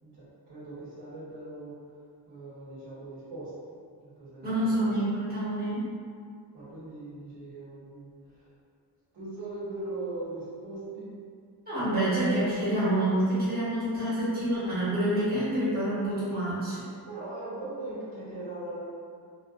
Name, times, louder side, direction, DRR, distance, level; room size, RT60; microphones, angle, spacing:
voice 1, 0.0-1.7 2.3-3.5 4.0-4.9 6.5-8.5 9.1-11.2 17.0-18.8, right 2 dB, 90° right, -10 dB, 1.1 m, -40 dB
voice 2, 4.4-5.8 11.7-16.8, right 1 dB, 25° right, -11 dB, 1.0 m, -27 dB
2.5 x 2.2 x 2.3 m, 2.2 s
wide cardioid pair, 155°, 40 cm